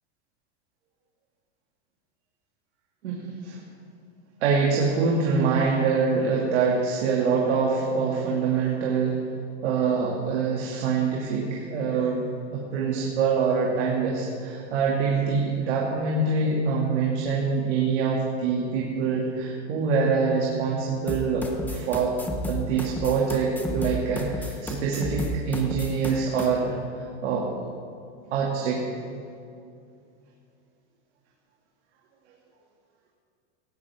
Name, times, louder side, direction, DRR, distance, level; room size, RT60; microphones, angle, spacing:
voice 1, 3.0-3.6 4.4-9.2 9.6-22.1 22.5-27.5 28.3-28.8, right 5 dB, 90° right, -3 dB, 2.6 m, -25 dB
sound 1, 21.1-26.5, left 1 dB, 5° left, 0.7 m, -32 dB
17.5 x 16.0 x 3.7 m, 2.4 s
supercardioid pair, 170°, 34 cm